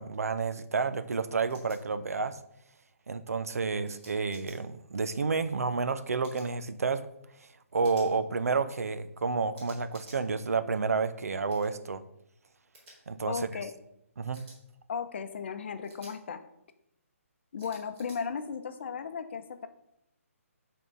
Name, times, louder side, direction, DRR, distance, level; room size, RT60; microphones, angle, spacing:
voice 1, 0.0-2.4 3.1-7.0 7.7-12.0 13.1-13.5 14.2-14.4, right 4 dB, 85° right, 12 dB, 0.6 m, -30 dB
sound 1, 1.5-1.8 3.9-4.5 6.2-6.5 7.8-8.1 9.5-10.2 11.5-11.7 12.7-12.9 14.3-14.6 15.8-16.1 17.6-18.2, right 1 dB, 20° right, 3.0 m, -53 dB
voice 2, 13.3-13.7 14.9-16.4 17.5-19.7, left 6 dB, 50° left, 9 dB, 0.7 m, -36 dB
8.6 x 3.8 x 5.3 m, 0.80 s
hypercardioid pair, 160°, 8 cm